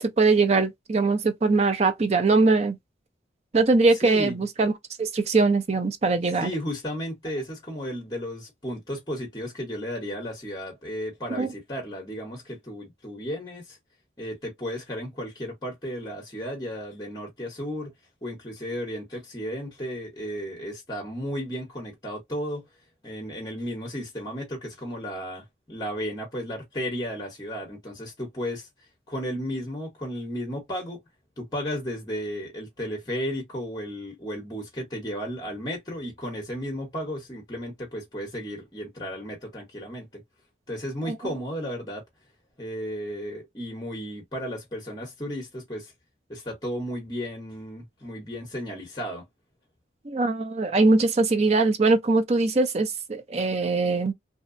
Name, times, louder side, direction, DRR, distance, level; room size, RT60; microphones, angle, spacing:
voice 1, 0.0-2.8 3.5-4.7 5.0-6.5 11.4-11.5 41.1-41.2 50.1-54.1, right 3 dB, 35° right, 0.4 m, -22 dB
voice 2, 4.0-4.4 6.4-13.8 14.2-17.9 18.2-22.6 23.0-28.7 29.1-31.0 31.4-40.2 40.7-42.0 42.6-45.9 46.3-49.2, equal, 20° left, 0.8 m, -34 dB
2.7 x 2.1 x 2.5 m
head